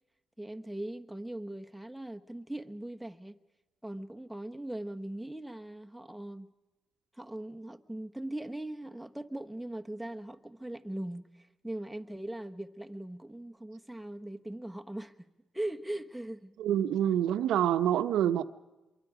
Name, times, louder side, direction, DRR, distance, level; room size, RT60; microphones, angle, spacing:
voice 1, 0.4-3.4 3.8-6.5 7.1-15.3 15.5-16.5, right 1 dB, ahead, 1.2 m, -40 dB
voice 2, 16.6-18.4, right 10 dB, 80° right, 1.0 m, -26 dB
25.5 x 23.0 x 5.1 m
cardioid pair, 90°, 0 cm